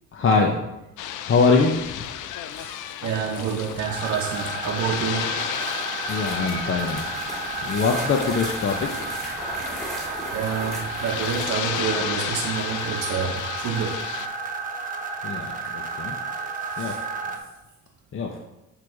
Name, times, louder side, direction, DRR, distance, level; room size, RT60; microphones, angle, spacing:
voice 1, 0.1-0.6 1.2-2.1 6.1-7.1 7.6-9.1 15.2-16.2 16.8-17.0 18.1-18.4, left 4 dB, 45° left, 2 dB, 0.7 m, -23 dB
sound 1, 1.0-14.3, left 11 dB, 80° left, 0.5 m, -33 dB
voice 2, 2.5-5.4 6.1-6.2 10.3-14.1 16.7-17.0, right 6 dB, 55° right, 0 dB, 0.8 m, -28 dB
sound 2, 3.8-17.4, right 4 dB, 25° right, 1.0 m, -32 dB
sound 3, 6.0-11.6, right 1 dB, ahead, 2.3 m, -37 dB
8.3 x 3.2 x 4.6 m, 0.96 s
cardioid pair, 90°, 30 cm